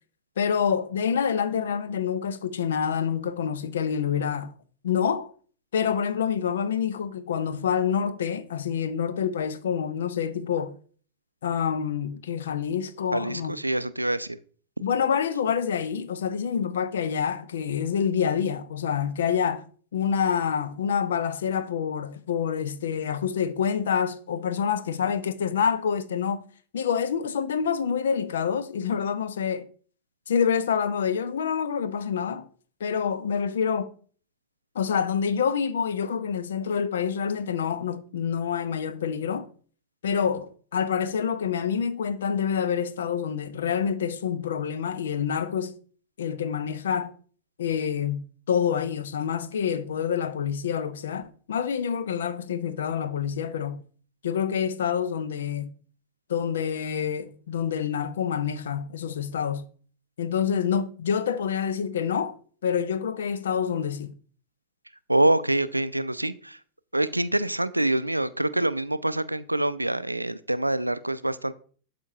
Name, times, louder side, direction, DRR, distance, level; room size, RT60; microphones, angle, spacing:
voice 1, 0.4-4.5 4.8-5.3 5.7-10.7 11.4-13.5 14.8-19.6 19.9-26.4 26.7-29.7 30.3-32.5 32.8-33.9 34.7-39.5 40.0-45.7 46.2-47.1 47.6-53.8 54.2-55.7 56.3-59.6 60.2-62.3 62.6-64.1, left 7 dB, 65° left, 0.6 m, -27 dB
voice 2, 13.1-14.3 65.1-66.6 66.9-71.5, right 1 dB, 85° right, 0.4 m, -25 dB
11.5 x 4.4 x 2.7 m
figure-of-eight pair, 90°, 0 cm